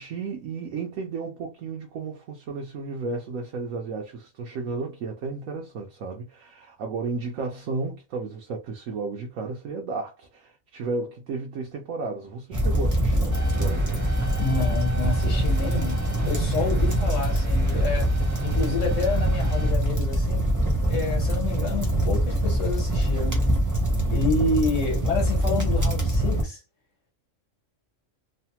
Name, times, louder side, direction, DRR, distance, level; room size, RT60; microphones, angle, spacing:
voice 1, 0.0-14.0 16.8-17.1 24.1-24.5, right 4 dB, 85° right, 1.1 m, -33 dB
sound 1, 12.5-26.4, right 1 dB, 20° right, 0.5 m, -24 dB
sound 2, 13.3-19.7, equal, 35° right, 1.2 m, -40 dB
voice 2, 14.4-18.1 18.4-20.4 20.8-23.4 24.1-26.6, left 4 dB, 70° left, 1.4 m, -29 dB
3.2 x 2.1 x 2.8 m
omnidirectional pair, 1.3 m